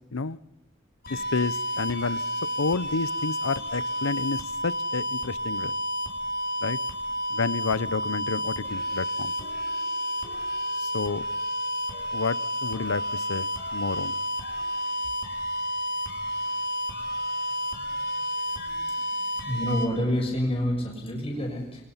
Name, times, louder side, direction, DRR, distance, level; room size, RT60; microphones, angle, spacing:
sound 1, 1.0-19.9, equal, 50° left, 5.3 m, -31 dB
voice 1, 1.1-2.2 2.6-5.7 6.6-6.8 7.3-9.3 10.8-11.2 12.1-14.1, left 4 dB, 85° left, 0.8 m, -30 dB
voice 2, 19.4-21.9, equal, 30° left, 6.7 m, -28 dB
28.5 x 24.0 x 5.7 m
head